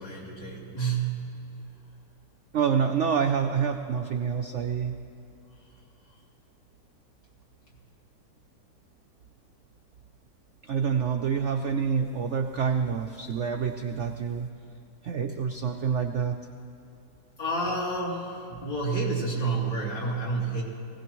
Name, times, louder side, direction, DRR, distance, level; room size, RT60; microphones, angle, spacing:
voice 1, 0.0-1.4 17.4-20.6, right 3 dB, 75° left, -6 dB, 3.7 m, -29 dB
voice 2, 2.5-5.0 10.6-14.5 15.0-16.4, right 7 dB, 85° right, 5 dB, 0.6 m, -27 dB
19.5 x 17.0 x 3.1 m, 2.7 s
omnidirectional pair, 1.9 m